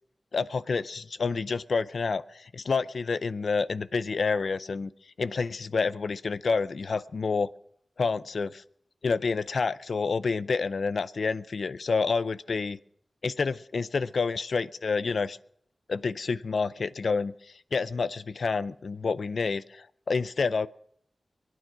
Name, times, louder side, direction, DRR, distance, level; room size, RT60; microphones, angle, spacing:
voice 1, 0.3-4.9 5.2-7.5 8.0-8.6 9.0-12.8 13.2-15.4 15.9-17.3 17.7-20.7, left 4 dB, 75° left, 16 dB, 0.5 m, -28 dB
23.0 x 9.4 x 6.1 m, 0.69 s
cardioid pair, 55°, 0 cm